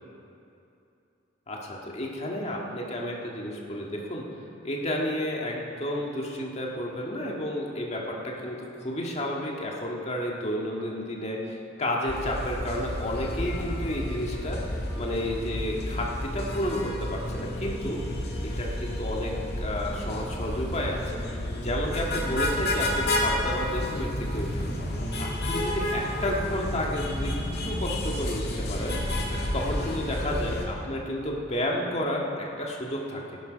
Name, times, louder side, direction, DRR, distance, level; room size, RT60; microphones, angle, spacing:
voice 1, 1.5-4.3 4.6-18.0 18.4-21.0 21.6-24.7 25.2-29.0 29.5-33.4, left 1 dB, 35° left, -1 dB, 1.8 m, -31 dB
sound 1, 12.1-30.7, left 1 dB, 55° left, 2.0 m, -31 dB
16.5 x 10.5 x 5.2 m, 2.8 s
head